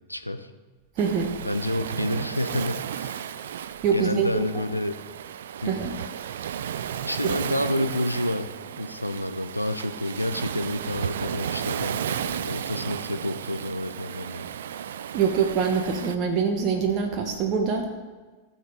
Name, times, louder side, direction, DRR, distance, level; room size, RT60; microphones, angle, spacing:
voice 1, 0.1-0.5 1.4-3.3 3.9-5.0 5.6-5.8 7.0-8.5 8.8-14.5, left 1 dB, 90° left, 9 dB, 0.6 m, -29 dB
voice 2, 1.0-1.3 3.8-4.6 5.6-5.9 7.2-7.3 15.1-17.9, right 6 dB, 35° right, 3 dB, 1.3 m, -24 dB
Waves surf, 1.0-16.2, right 9 dB, 60° right, 0.4 m, -34 dB
16.5 x 7.3 x 4.7 m, 1.3 s
figure-of-eight pair, 90°, 0 cm